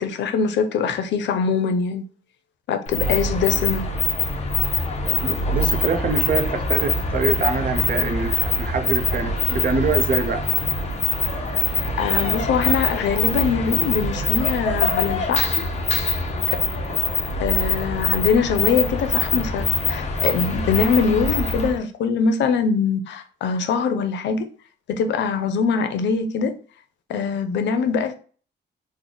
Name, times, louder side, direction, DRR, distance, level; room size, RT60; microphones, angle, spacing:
voice 1, 0.0-2.0 2.7-3.9 12.0-15.6 16.5-16.6 17.4-24.5 24.9-26.5 27.1-28.1, left 5 dB, 85° left, 0.5 m, -23 dB
sound 1, 2.9-21.8, left 3 dB, 40° left, 0.6 m, -23 dB
voice 2, 5.1-10.4, right 4 dB, 55° right, 0.6 m, -25 dB
3.2 x 2.1 x 3.8 m
wide cardioid pair, 145°, 18 cm